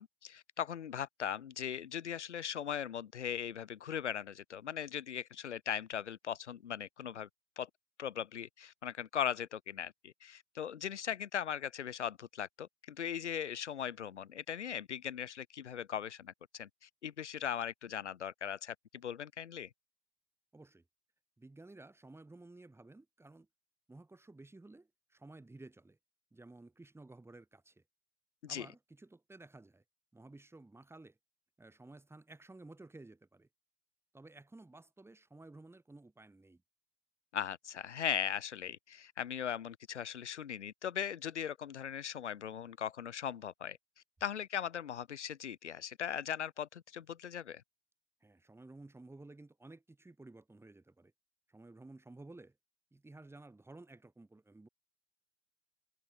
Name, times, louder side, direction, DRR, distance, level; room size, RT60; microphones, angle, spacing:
voice 1, 0.0-7.3 7.6-7.7 8.0-19.7 28.4-28.7 37.3-43.8 44.2-47.6, left 9 dB, 75° left, 1.0 m, -39 dB
voice 2, 20.5-20.8 21.4-23.5 23.9-26.0 26.3-27.8 28.5-29.8 30.1-31.2 31.6-33.5 34.1-36.6 48.2-51.1 51.5-52.6 52.9-54.7, right 2 dB, 5° right, 5.1 m, -54 dB
figure-of-eight pair, 85°, 35 cm